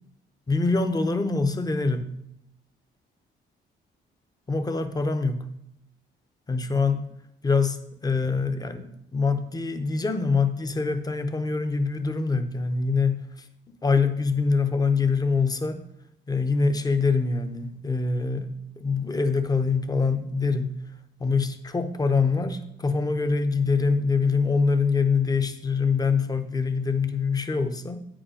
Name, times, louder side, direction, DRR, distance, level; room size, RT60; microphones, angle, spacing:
voice 1, 0.5-2.1 4.5-5.5 6.5-7.0 7.4-13.5 13.8-15.8 16.3-20.8 21.2-28.0, left 4 dB, 20° left, 9 dB, 0.8 m, -24 dB
8.1 x 5.0 x 5.0 m, 0.77 s
cardioid pair, 90°, 20 cm